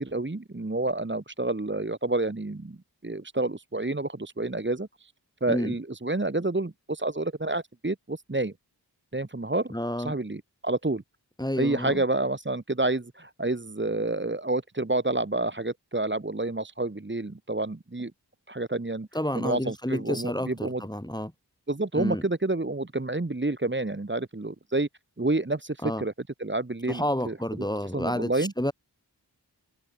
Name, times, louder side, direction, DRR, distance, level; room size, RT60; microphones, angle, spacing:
voice 1, 0.0-2.8 3.0-5.1 5.4-8.5 9.1-11.0 11.6-18.1 18.5-19.1 19.3-20.8 21.7-24.9 25.2-26.1 26.4-28.7, right 2 dB, 30° right, 1.8 m, -29 dB
voice 2, 9.7-10.1 11.4-12.0 19.1-21.3 21.9-22.2 25.8-26.0 26.9-28.7, left 1 dB, 10° left, 6.1 m, -30 dB
wide cardioid pair, 45°, 40 cm